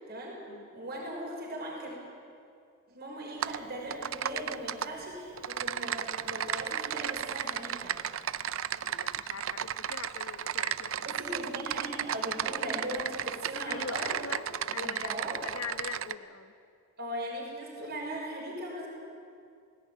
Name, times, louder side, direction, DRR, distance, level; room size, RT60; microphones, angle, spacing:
voice 1, 0.1-0.4 0.7-2.0 2.9-8.0 11.0-14.2 14.7-15.4 17.0-18.9, right 1 dB, 50° right, -3 dB, 5.5 m, -39 dB
Typing, 3.4-3.6 3.9-4.9 5.4-16.1, right 9 dB, 75° right, 0.6 m, -34 dB
voice 2, 8.8-11.4 13.7-16.5, left 5 dB, 80° left, 11 dB, 1.1 m, -42 dB
19.0 x 17.0 x 9.5 m, 2.4 s
head